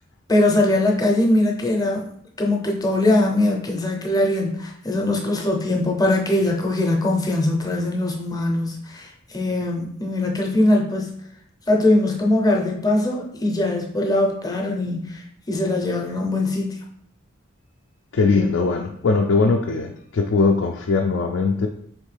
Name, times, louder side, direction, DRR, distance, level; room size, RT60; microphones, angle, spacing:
voice 1, 0.3-2.1 2.4-11.2 11.7-16.8, left 1 dB, 20° left, 1 dB, 0.6 m, -21 dB
voice 2, 18.1-21.7, left 4 dB, 60° left, 3 dB, 0.3 m, -20 dB
4.4 x 3.1 x 3.3 m, 0.68 s
head